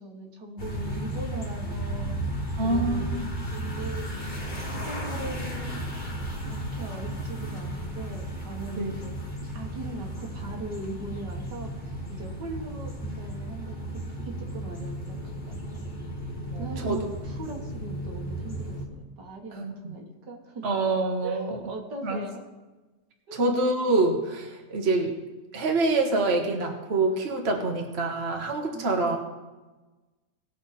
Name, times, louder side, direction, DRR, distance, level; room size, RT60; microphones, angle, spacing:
voice 1, 0.0-2.3 2.6-3.2 3.5-5.8 6.4-9.2 9.5-16.0 16.6-20.7 21.2-22.5 23.3-23.5 28.7-29.2, right 2 dB, 80° right, 1 dB, 2.1 m, -40 dB
sound 1, 0.6-18.9, right 1 dB, 30° left, 1.6 m, -34 dB
voice 2, 2.6-3.3 8.8-8.9 16.5-17.0 19.5-19.9 20.6-21.5 22.0-22.2 23.3-25.1 25.5-29.2, right 2 dB, 40° right, 2 dB, 1.5 m, -26 dB
18.5 x 6.3 x 4.2 m, 1.2 s
omnidirectional pair, 1.8 m